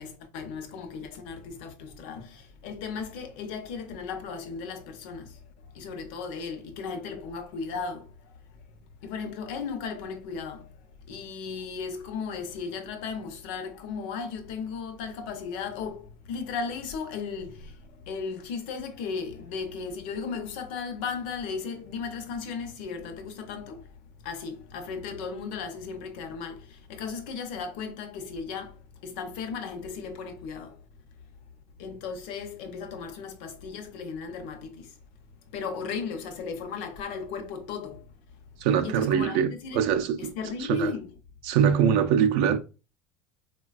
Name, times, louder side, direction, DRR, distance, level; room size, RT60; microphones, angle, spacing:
voice 1, 0.0-5.3 5.7-8.1 9.0-10.6 11.1-23.9 24.2-28.7 29.0-30.8 31.8-34.9 35.5-38.0 38.8-39.8 40.2-41.1, left 5 dB, 75° left, 0.6 m, -36 dB
voice 2, 38.6-40.3 40.6-40.9 41.4-42.6, right 8 dB, 70° right, 0.4 m, -23 dB
3.9 x 2.2 x 2.3 m
cardioid pair, 160°, 6 cm